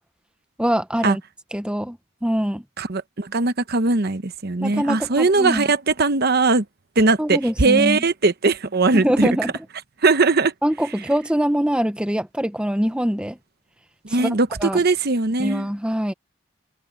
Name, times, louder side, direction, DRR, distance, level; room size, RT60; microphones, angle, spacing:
voice 1, 0.6-1.2 1.5-2.6 4.6-5.7 7.2-8.0 8.9-9.5 10.6-13.4 14.2-14.3 14.6-14.8 15.4-16.1, equal, 5° right, 0.8 m, -23 dB
voice 2, 2.8-6.6 7.0-9.3 10.0-10.5 14.0-15.7, right 3 dB, 50° right, 1.0 m, -20 dB
head